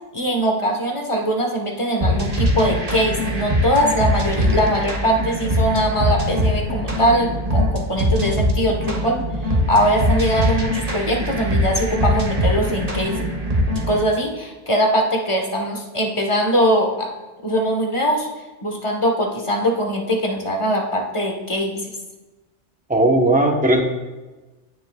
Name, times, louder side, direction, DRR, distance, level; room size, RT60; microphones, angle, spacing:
voice 1, 0.1-13.2 13.9-17.1 17.4-18.3 18.6-21.9, equal, 25° left, 1 dB, 1.2 m, -21 dB
sound 1, 2.0-14.0, equal, 35° right, 1.1 m, -22 dB
voice 2, 22.9-23.8, right 1 dB, 10° right, 2 dB, 0.8 m, -16 dB
16.5 x 6.2 x 2.3 m, 1.2 s
omnidirectional pair, 1.2 m